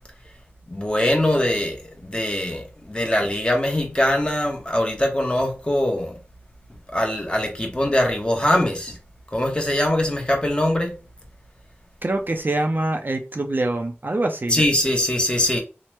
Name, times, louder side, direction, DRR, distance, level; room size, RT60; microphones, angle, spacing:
voice 1, 0.7-6.2 6.9-9.0 9.3-10.9 14.5-15.6, left 1 dB, 20° left, 0.8 m, -22 dB
voice 2, 12.0-14.6, right 2 dB, 45° right, 0.4 m, -24 dB
2.9 x 2.0 x 3.2 m
wide cardioid pair, 50°, 5 cm